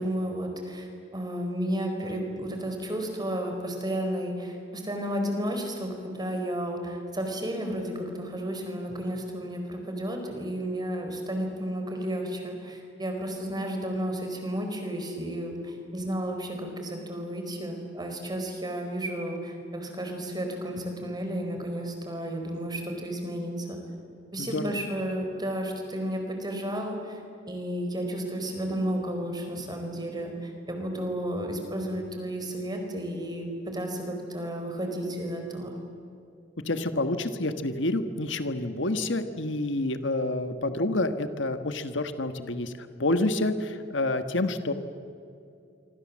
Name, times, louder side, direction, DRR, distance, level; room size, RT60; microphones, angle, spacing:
voice 1, 0.0-23.8 24.3-27.2 27.5-35.7, equal, 20° right, 3 dB, 4.7 m, -32 dB
voice 2, 24.4-24.8 36.7-44.7, left 2 dB, 75° left, 9 dB, 1.5 m, -28 dB
26.0 x 25.0 x 7.5 m, 2.6 s
head